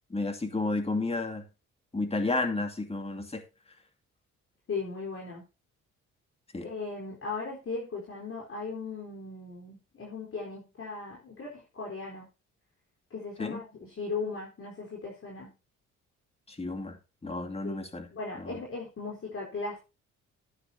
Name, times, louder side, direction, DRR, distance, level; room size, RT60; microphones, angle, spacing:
voice 1, 0.1-1.4 1.9-3.4 6.5-6.7 13.4-13.6 16.5-17.0 17.2-18.1 18.4-18.6, left 2 dB, 20° left, 6 dB, 2.4 m, -31 dB
voice 2, 4.7-5.4 6.6-12.3 13.1-15.5 17.6-17.8 18.1-19.8, left 4 dB, 45° left, -3 dB, 4.2 m, -37 dB
12.5 x 9.8 x 2.8 m, 0.28 s
cardioid pair, 90°, 30 cm